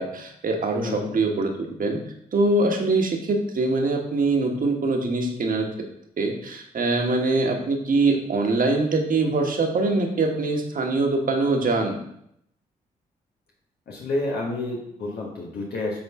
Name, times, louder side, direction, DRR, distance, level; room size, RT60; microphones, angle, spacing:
voice 1, 0.0-2.0 2.3-5.7 6.2-12.0, right 3 dB, 55° right, 2 dB, 1.4 m, -23 dB
voice 2, 0.7-1.2 13.9-16.0, left 2 dB, 65° left, -4 dB, 1.4 m, -29 dB
8.6 x 3.7 x 3.6 m, 0.73 s
hypercardioid pair, 45°, 17 cm